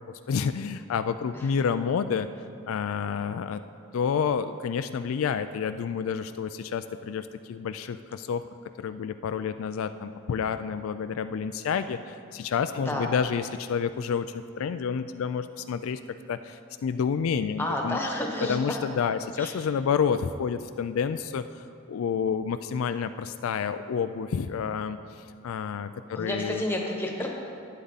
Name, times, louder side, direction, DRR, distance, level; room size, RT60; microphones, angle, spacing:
voice 1, 0.3-2.3 2.7-3.6 3.9-8.4 8.8-16.0 16.3-18.0 18.5-26.6, left 6 dB, 75° left, 10 dB, 0.3 m, -29 dB
voice 2, 17.6-18.8 19.4-19.5 26.1-27.3, left 1 dB, 10° left, 0 dB, 1.2 m, -30 dB
11.5 x 9.8 x 4.0 m, 2.4 s
head